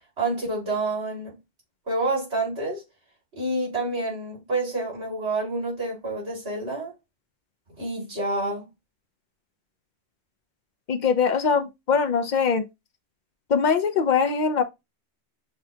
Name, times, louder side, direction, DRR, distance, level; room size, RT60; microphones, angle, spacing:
voice 1, 0.2-1.4 1.9-2.8 3.4-6.9 7.8-8.7, right 2 dB, 85° right, 3.1 m, -28 dB
voice 2, 10.9-12.7 13.5-14.6, left 6 dB, 55° left, 0.6 m, -22 dB
6.7 x 2.2 x 2.6 m
omnidirectional pair, 1.1 m